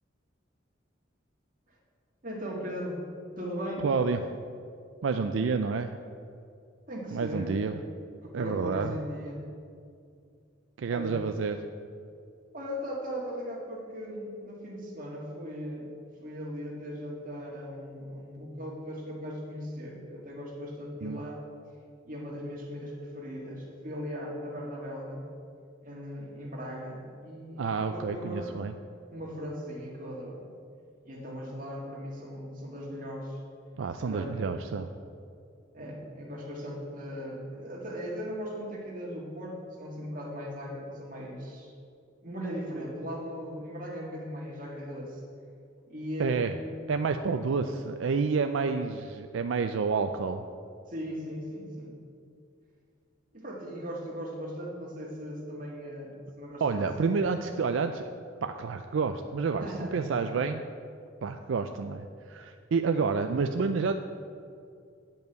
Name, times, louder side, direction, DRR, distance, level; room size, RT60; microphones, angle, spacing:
voice 1, 2.2-3.0 3.4-3.9 6.9-7.6 8.2-9.5 10.9-11.1 12.5-15.9 16.2-21.4 22.1-25.3 25.8-28.5 29.1-30.4 31.0-33.4 34.0-34.3 35.7-41.7 42.2-45.2 45.9-46.7 50.9-52.0 53.3-57.4 59.6-60.0, equal, 45° right, -3 dB, 2.0 m, -38 dB
voice 2, 3.8-4.2 5.0-5.9 7.1-7.8 8.3-8.9 10.8-11.6 21.0-21.2 27.6-28.7 33.8-34.9 46.2-46.5 46.9-50.4 56.6-58.1 58.4-59.6 59.9-60.6 61.2-64.0, right 5 dB, 80° right, 7 dB, 0.4 m, -29 dB
8.9 x 5.4 x 7.8 m, 2.4 s
head